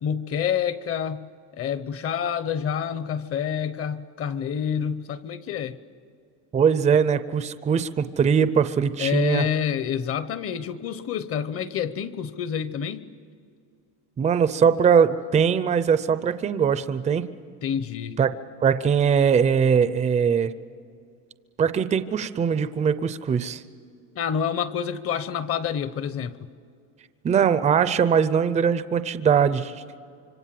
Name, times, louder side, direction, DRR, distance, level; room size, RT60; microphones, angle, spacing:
voice 1, 0.0-1.2 1.5-5.8 6.9-7.0 9.0-13.1 17.6-18.2 24.1-26.5, left 8 dB, 35° left, 14 dB, 0.9 m, -28 dB
voice 2, 6.5-9.4 14.2-17.3 18.2-18.3 18.6-20.5 21.6-23.6 27.2-29.8, right 7 dB, 15° right, 12 dB, 0.6 m, -21 dB
26.0 x 24.5 x 7.6 m, 2.4 s
cardioid pair, 160°, 41 cm